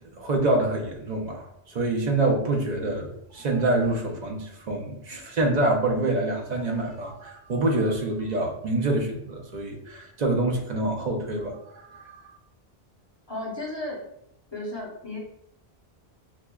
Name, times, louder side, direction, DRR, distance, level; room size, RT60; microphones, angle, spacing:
voice 1, 0.0-12.2, right 2 dB, 50° right, 1 dB, 0.6 m, -26 dB
voice 2, 13.3-14.0 14.5-15.2, left 1 dB, 30° left, -3 dB, 0.7 m, -34 dB
5.8 x 2.1 x 2.2 m, 0.76 s
omnidirectional pair, 1.0 m